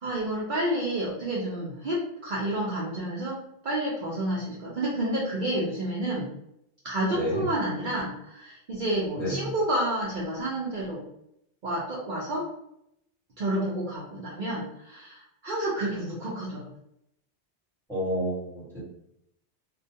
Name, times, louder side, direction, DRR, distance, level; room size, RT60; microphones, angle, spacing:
voice 1, 0.0-6.3 6.8-11.0 11.6-12.4 13.4-16.7, right 1 dB, 55° right, -5 dB, 0.6 m, -30 dB
voice 2, 7.1-7.4 9.2-9.5 17.9-18.8, equal, ahead, -8 dB, 1.2 m, -30 dB
2.3 x 2.2 x 2.6 m, 0.76 s
omnidirectional pair, 1.2 m